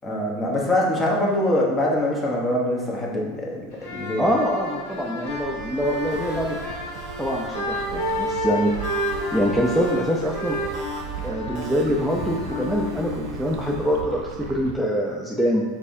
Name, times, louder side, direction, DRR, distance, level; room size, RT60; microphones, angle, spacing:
voice 1, 0.0-4.3, left 1 dB, 20° left, -2 dB, 1.0 m, -24 dB
sound 1, 3.7-13.5, left 1 dB, 75° left, 1.5 m, -31 dB
voice 2, 4.2-6.6 7.2-8.9 9.3-10.6 11.2-15.6, equal, ahead, -4 dB, 0.5 m, -24 dB
sound 2, 5.2-14.8, right 7 dB, 70° right, 0.4 m, -38 dB
sound 3, 5.8-14.0, right 3 dB, 45° right, 0.8 m, -42 dB
5.3 x 3.6 x 2.6 m, 1.3 s
supercardioid pair, 110°, 0 cm